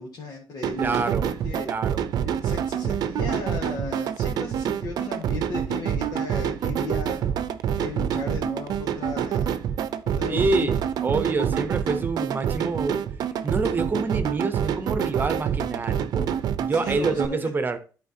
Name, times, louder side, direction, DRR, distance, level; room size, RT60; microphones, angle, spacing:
voice 1, 0.0-1.7 2.2-7.2 7.8-9.5 10.0-10.7 16.7-17.4, left 3 dB, 70° left, 1.5 m, -36 dB
sound 1, 0.6-17.3, right 9 dB, 80° right, 0.6 m, -27 dB
voice 2, 0.8-1.2 1.7-2.0 10.3-13.0 13.4-16.3 16.6-17.8, right 3 dB, 30° right, 0.9 m, -27 dB
12.5 x 4.3 x 2.8 m
cardioid pair, 140°, 7 cm